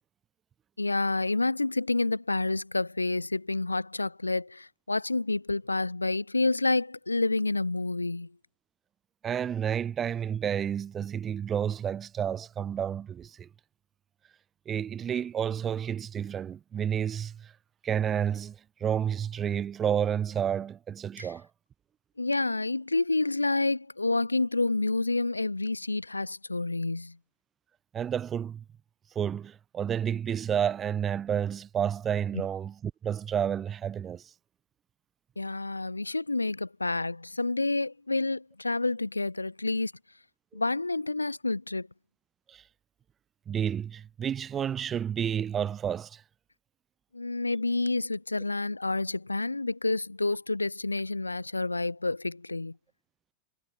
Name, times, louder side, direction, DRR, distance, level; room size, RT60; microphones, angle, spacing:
voice 1, 0.8-8.3 21.2-21.3 22.2-27.2 35.4-39.9 40.5-41.9 47.1-52.8, left 2 dB, 80° left, 0.7 m, -29 dB
voice 2, 9.2-13.5 14.7-17.5 17.8-21.5 27.9-28.6 29.1-34.2 40.5-40.6 42.5-42.6 43.5-46.2, right 8 dB, 25° right, 0.7 m, -30 dB
figure-of-eight pair, 90°, 0 cm